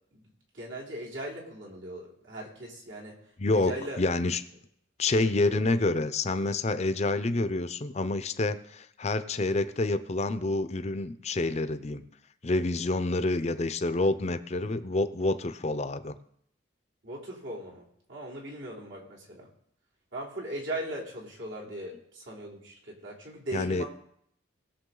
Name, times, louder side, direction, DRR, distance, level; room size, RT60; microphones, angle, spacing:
voice 1, 0.5-3.2 3.5-4.0 5.2-5.6 17.0-19.5 20.1-23.9, right 1 dB, 75° right, -4 dB, 3.4 m, -39 dB
voice 2, 3.4-4.4 5.0-12.0 12.4-16.1 23.5-23.8, left 2 dB, 35° left, 12 dB, 0.6 m, -28 dB
19.5 x 7.1 x 3.9 m, 0.70 s
head